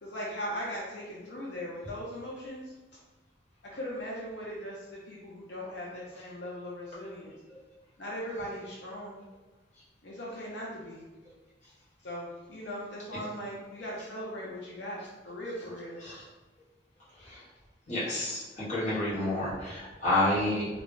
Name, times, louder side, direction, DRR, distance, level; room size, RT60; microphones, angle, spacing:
voice 1, 0.0-2.7 3.7-7.3 8.0-9.2 10.0-11.1 12.0-16.0, equal, 70° left, -6 dB, 0.6 m, -39 dB
voice 2, 17.9-20.7, left 1 dB, 40° left, -8 dB, 1.0 m, -29 dB
2.3 x 2.1 x 3.7 m, 1.2 s
head